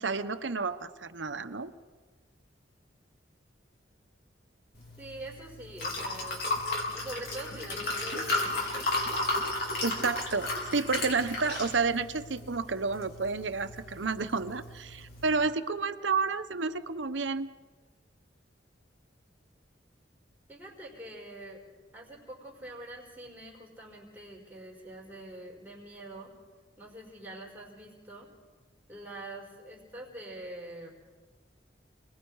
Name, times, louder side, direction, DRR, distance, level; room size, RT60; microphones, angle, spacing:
voice 1, 0.0-1.7 9.8-17.5, right 4 dB, 85° right, 10 dB, 1.0 m, -30 dB
Liquid, 4.7-15.3, left 2 dB, 55° left, 4.3 m, -34 dB
voice 2, 5.0-6.4 6.9-9.2 20.5-21.6 21.9-26.3 26.8-28.3 28.9-30.9, right 1 dB, 10° right, -2 dB, 4.7 m, -45 dB
29.0 x 20.5 x 4.8 m, 1.4 s
head